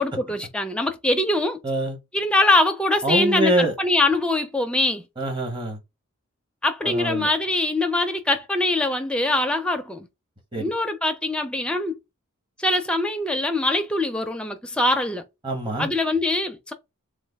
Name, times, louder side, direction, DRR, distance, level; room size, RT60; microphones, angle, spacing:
voice 1, 0.0-1.6 2.1-5.1 6.6-10.1 10.6-12.0 12.6-15.2 15.8-16.7, left 2 dB, 5° left, 0.4 m, -23 dB
voice 2, 1.6-2.0 3.0-3.7 5.2-5.8 6.8-7.3 10.5-10.6 15.4-15.9, right 1 dB, 20° right, 0.9 m, -24 dB
3.2 x 2.2 x 3.4 m
head